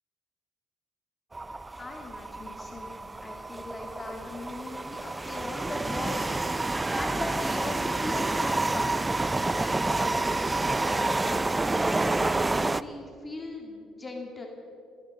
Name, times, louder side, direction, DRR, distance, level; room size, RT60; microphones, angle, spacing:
sound 1, 1.3-12.8, right 2 dB, 20° right, 0.4 m, -29 dB
voice 1, 1.8-6.3 7.0-14.5, left 2 dB, 25° left, 1 dB, 2.3 m, -39 dB
26.5 x 9.6 x 5.4 m, 2.4 s
supercardioid pair, 75°, 0 cm